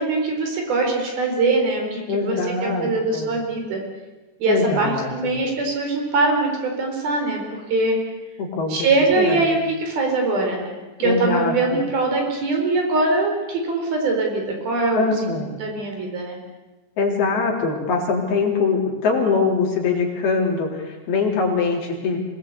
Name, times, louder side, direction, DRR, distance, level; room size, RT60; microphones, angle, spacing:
voice 1, 0.0-3.8 4.4-8.0 8.7-15.3 15.6-16.4, right 3 dB, 60° right, 2 dB, 5.8 m, -22 dB
voice 2, 2.1-3.3 4.4-5.3 8.4-8.9 9.2-9.5 11.0-11.8 14.9-15.5 17.0-22.2, left 4 dB, 65° left, -1 dB, 5.5 m, -23 dB
25.5 x 18.5 x 8.3 m, 1.2 s
omnidirectional pair, 4.8 m